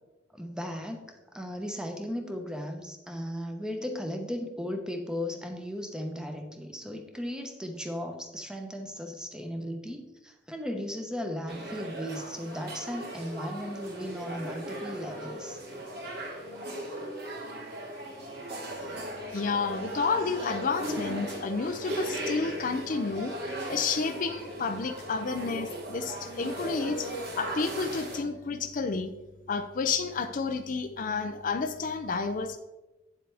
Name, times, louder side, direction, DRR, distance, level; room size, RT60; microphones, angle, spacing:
voice 1, 0.3-15.6, equal, 5° right, 4 dB, 0.8 m, -36 dB
sound 1, 11.5-28.2, equal, 55° right, 2.2 m, -37 dB
voice 2, 19.3-27.1 27.4-29.1 29.5-32.6, left 4 dB, 45° left, 8 dB, 0.4 m, -30 dB
9.1 x 7.5 x 3.4 m, 1.1 s
head